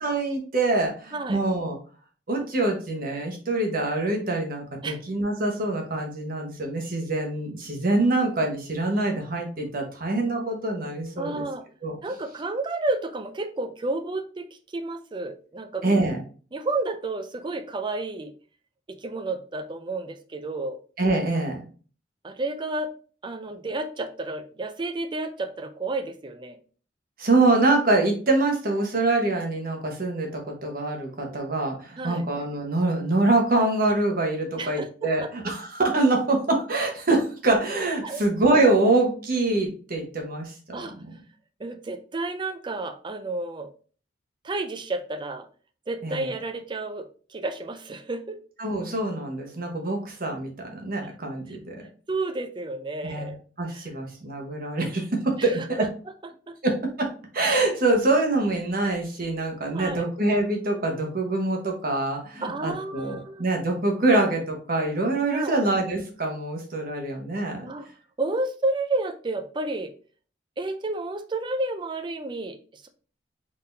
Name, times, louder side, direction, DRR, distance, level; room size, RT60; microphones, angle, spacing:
voice 1, 0.0-1.8 2.3-11.5 11.8-11.9 15.8-16.2 21.0-21.7 27.2-41.1 46.0-46.3 48.6-51.8 53.0-55.8 56.6-57.1 57.3-67.6, right 2 dB, 50° right, 2 dB, 1.1 m, -25 dB
voice 2, 11.2-11.6 12.0-16.0 16.5-18.3 18.9-20.8 22.2-22.9 23.2-26.6 32.0-32.2 34.6-35.3 38.0-38.2 40.7-40.9 41.6-43.7 44.4-45.5 45.9-48.4 51.5-51.6 52.1-53.4 53.7-53.8 55.4-55.5 55.8-56.1 56.5-56.6 59.7-60.1 62.4-63.4 65.3-65.6 67.6-67.9 68.2-69.9 70.6-72.9, right 2 dB, 25° right, 8 dB, 0.4 m, -31 dB
3.8 x 3.8 x 2.6 m, 0.39 s
head